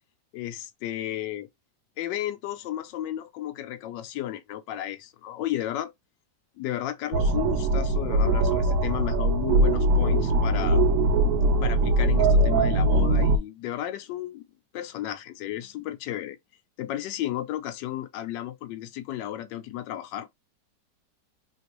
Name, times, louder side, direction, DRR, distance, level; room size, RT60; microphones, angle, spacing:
voice 1, 0.3-1.5 2.0-5.9 6.6-10.8 11.6-14.4 14.7-16.4 16.8-20.3, left 12 dB, 80° left, 1.2 m, -33 dB
sound 1, 7.1-13.4, right 1 dB, 80° right, 0.7 m, -21 dB
3.2 x 2.5 x 2.9 m
omnidirectional pair, 1.9 m